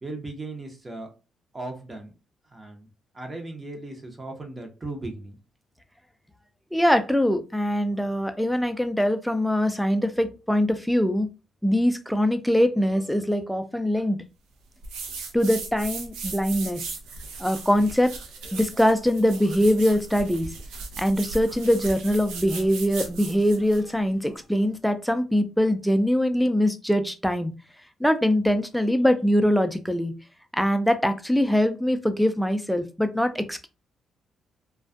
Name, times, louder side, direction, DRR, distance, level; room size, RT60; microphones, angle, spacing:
voice 1, 0.0-1.1 1.5-2.1 2.5-2.9 3.1-5.4, right 2 dB, 30° right, 3 dB, 0.7 m, -37 dB
voice 2, 6.7-11.3 11.6-14.2 15.3-16.8 17.4-18.1 18.5-20.5 21.0-27.5 28.0-30.1 30.5-33.7, equal, ahead, 8 dB, 0.4 m, -23 dB
sound 1, 14.8-23.9, right 4 dB, 75° right, 0.5 m, -37 dB
2.4 x 2.2 x 2.4 m, 0.31 s
hypercardioid pair, 50°, 0 cm